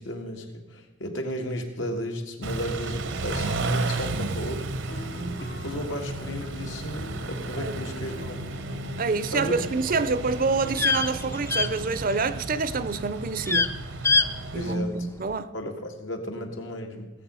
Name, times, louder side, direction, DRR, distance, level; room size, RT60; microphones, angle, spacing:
voice 1, 0.0-4.7 5.0-8.5 9.3-9.7 10.0-10.1 14.5-14.9 15.5-17.1, equal, 75° left, 1.9 m, -34 dB
Car / Idling / Accelerating revving vroom, 2.4-14.7, right 2 dB, 70° right, 0.8 m, -33 dB
sound 1, 4.8-11.9, left 2 dB, 60° left, 0.8 m, -45 dB
voice 2, 5.1-5.5 7.5-7.8 9.0-13.8 14.5-15.5, right 4 dB, 45° right, 0.5 m, -27 dB
sound 2, 10.0-12.4 12.7-13.0 13.3-13.7 14.0-14.3 14.6-14.7, left 4 dB, 15° left, 0.4 m, -24 dB
17.5 x 7.7 x 5.6 m
head